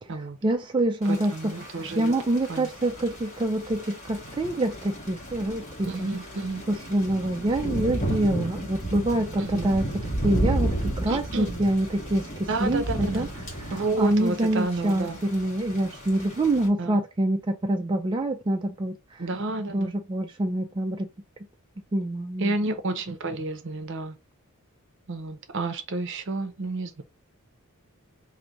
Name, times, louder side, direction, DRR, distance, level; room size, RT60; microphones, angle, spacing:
voice 1, 0.4-1.3 1.6-6.1 6.7-9.9 10.2-13.3 13.7-19.2 19.7-21.1 21.9-22.5, right 1 dB, 20° right, 0.4 m, -26 dB
Thunder / Rain, 1.0-16.7, right 1 dB, 35° left, 1.4 m, -33 dB
voice 2, 1.1-2.1 2.5-2.7 5.8-6.6 9.4-9.7 11.1-11.5 12.5-13.3 13.7-15.2 16.8-17.0 19.2-19.9 22.4-24.2 25.1-27.0, right 2 dB, 60° right, 0.7 m, -30 dB
3.2 x 2.6 x 3.8 m
head